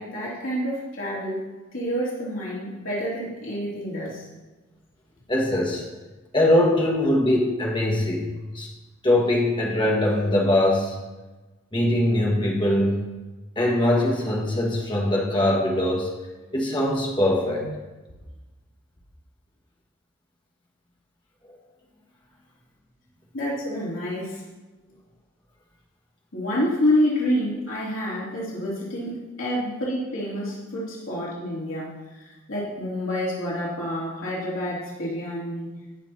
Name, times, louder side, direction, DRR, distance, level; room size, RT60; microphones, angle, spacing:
voice 1, 0.0-1.5 1.7-4.3 23.3-24.4 26.3-35.7, left 1 dB, 85° left, -7 dB, 2.9 m, -28 dB
voice 2, 5.3-5.8 6.3-8.2 8.5-8.7 9.0-10.9 11.7-13.1 13.5-16.1 16.5-17.7, left 1 dB, 25° left, -2 dB, 1.6 m, -22 dB
16.5 x 5.9 x 2.8 m, 1.2 s
head